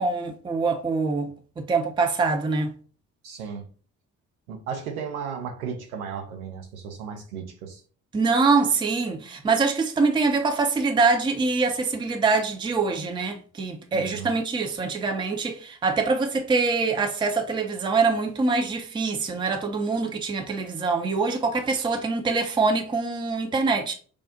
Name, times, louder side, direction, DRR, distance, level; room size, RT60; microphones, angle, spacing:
voice 1, 0.0-2.7 8.1-23.9, right 4 dB, 10° right, 0.5 m, -24 dB
voice 2, 3.2-3.7 4.5-7.8 13.9-14.3, right 6 dB, 75° right, 0.7 m, -35 dB
4.8 x 2.0 x 2.7 m
figure-of-eight pair, 40°, 43 cm